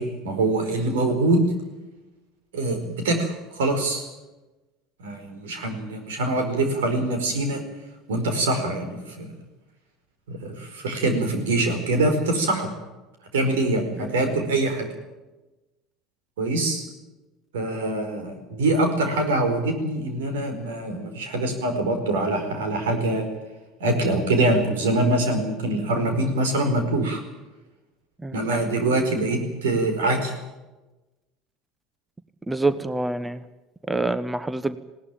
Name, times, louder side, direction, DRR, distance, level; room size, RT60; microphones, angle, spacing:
voice 1, 0.0-1.4 2.5-4.0 5.0-7.6 8.1-9.3 10.3-12.7 13.3-14.9 16.4-16.8 17.5-23.3 23.8-27.2 28.3-30.3, right 2 dB, 80° right, 6 dB, 4.7 m, -24 dB
voice 2, 32.5-33.4 33.9-34.8, right 2 dB, 15° right, 15 dB, 1.1 m, -26 dB
20.0 x 18.0 x 9.1 m, 1.1 s
hypercardioid pair, 70°, 0 cm